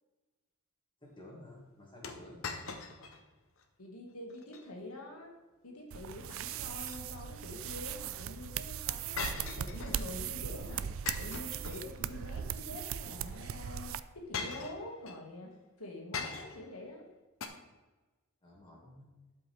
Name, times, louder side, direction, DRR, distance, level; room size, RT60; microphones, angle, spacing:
voice 1, 1.0-2.4 18.4-19.1, left 1 dB, 20° left, -3 dB, 2.1 m, -52 dB
sound 1, 2.0-3.2 3.6-3.7 4.3-4.7 6.6-7.4 9.2-10.2 11.1-12.2 13.4-13.5 14.3-15.2 16.1-16.7 17.4-17.5, left 5 dB, 65° left, 0.9 m, -41 dB
voice 2, 3.8-5.3 5.6-15.5 15.8-17.1, left 2 dB, 80° left, 0 dB, 1.9 m, -46 dB
sound 2, 5.9-14.0, right 9 dB, 60° right, 0.3 m, -39 dB
12.0 x 5.4 x 3.5 m, 1.2 s
head